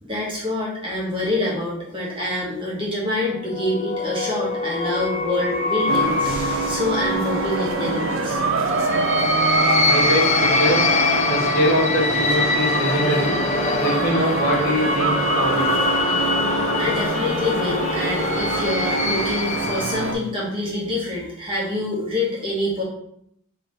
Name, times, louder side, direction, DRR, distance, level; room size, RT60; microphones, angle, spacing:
voice 1, 0.0-8.4 16.8-22.8, left 2 dB, 25° right, -5 dB, 1.2 m, -26 dB
sound 1, 3.3-20.1, left 3 dB, 30° left, 0.4 m, -24 dB
sound 2, 5.9-20.1, right 4 dB, 60° right, 0.5 m, -25 dB
voice 2, 9.8-10.9 11.3-13.4 13.8-15.7, equal, 50° left, -3 dB, 1.1 m, -23 dB
3.5 x 3.1 x 3.9 m, 0.71 s
head